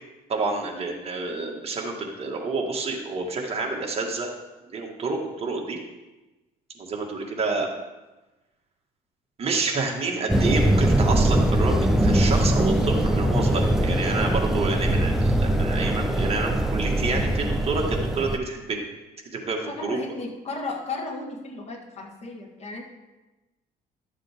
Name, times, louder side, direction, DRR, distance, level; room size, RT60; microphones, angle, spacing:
voice 1, 0.3-4.3 4.7-5.8 6.8-7.7 9.4-18.8 19.3-20.0, right 3 dB, 35° right, 0 dB, 1.8 m, -28 dB
sound 1, 10.3-18.4, right 1 dB, 5° right, 0.6 m, -22 dB
voice 2, 19.7-22.8, left 3 dB, 40° left, 2 dB, 1.7 m, -35 dB
11.5 x 7.4 x 3.6 m, 1.1 s
cardioid pair, 110°, 17 cm